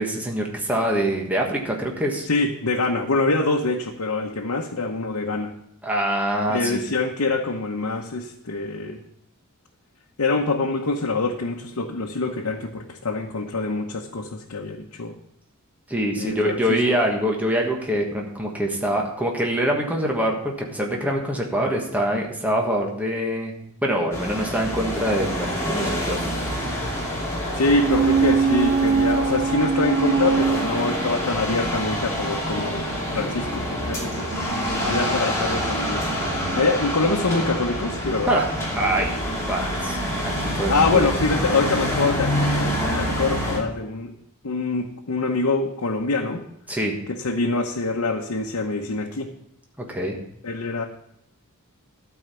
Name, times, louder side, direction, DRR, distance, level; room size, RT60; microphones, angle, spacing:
voice 1, 0.0-2.3 5.8-6.8 15.9-23.5 23.8-26.2 38.3-38.5 38.8-39.1 39.5-41.0 46.7-46.9 49.9-50.1, right 1 dB, 5° right, 0 dB, 1.4 m, -24 dB
voice 2, 2.3-5.5 6.5-9.0 10.2-15.1 16.2-16.8 27.5-34.3 34.8-38.4 40.7-44.1 44.4-46.4 47.2-49.3 50.4-50.8, left 3 dB, 90° left, 0 dB, 0.9 m, -25 dB
sound 1, 24.1-43.6, equal, 15° left, 2.6 m, -27 dB
sound 2, 27.8-31.5 31.9-32.0, right 5 dB, 55° right, 0.5 m, -22 dB
sound 3, 32.8-38.0, right 2 dB, 85° right, 1.2 m, -38 dB
12.5 x 4.8 x 6.9 m, 0.76 s
head